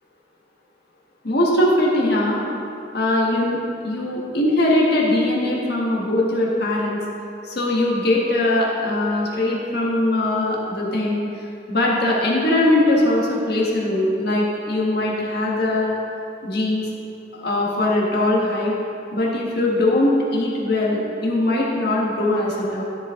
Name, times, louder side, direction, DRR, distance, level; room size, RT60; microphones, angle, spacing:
voice 1, 1.2-2.4 2.9-3.6 3.8-7.0 7.4-15.9 16.4-16.8 17.3-18.7 19.1-22.8, left 1 dB, 55° left, -3 dB, 1.5 m, -21 dB
12.5 x 5.2 x 3.8 m, 2.7 s
head